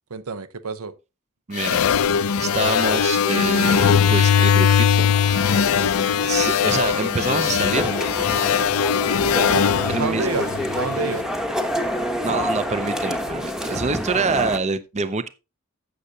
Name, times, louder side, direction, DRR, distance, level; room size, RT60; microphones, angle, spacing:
voice 1, 0.1-0.9 9.5-9.7 10.0-10.5 10.7-11.3, right 4 dB, 85° right, 0.7 m, -28 dB
voice 2, 1.5-1.8 2.1-5.6 6.2-7.9 9.9-10.3 12.2-15.3, right 4 dB, 30° right, 0.5 m, -26 dB
sound 1, 1.6-11.0, left 7 dB, 75° left, 0.5 m, -20 dB
sound 2, 3.7-14.6, equal, 5° right, 0.9 m, -29 dB
15.0 x 6.5 x 2.7 m
head